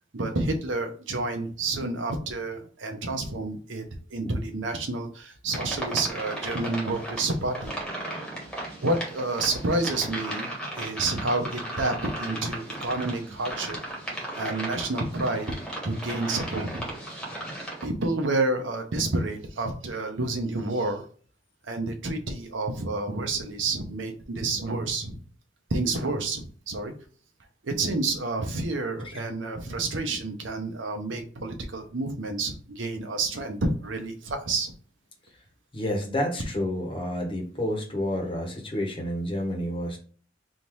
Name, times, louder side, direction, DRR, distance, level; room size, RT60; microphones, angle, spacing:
voice 1, 0.1-3.8 4.1-7.8 8.8-10.5 10.8-13.8 14.4-15.6 15.8-16.9 17.8-21.1 21.7-25.2 25.7-26.9 27.6-34.7, right 2 dB, 70° right, 5 dB, 0.8 m, -29 dB
sound 1, 5.5-17.8, right 1 dB, 5° left, 1.3 m, -36 dB
voice 2, 35.7-40.0, left 1 dB, 30° left, 1 dB, 1.1 m, -29 dB
3.7 x 2.7 x 4.5 m, 0.43 s
head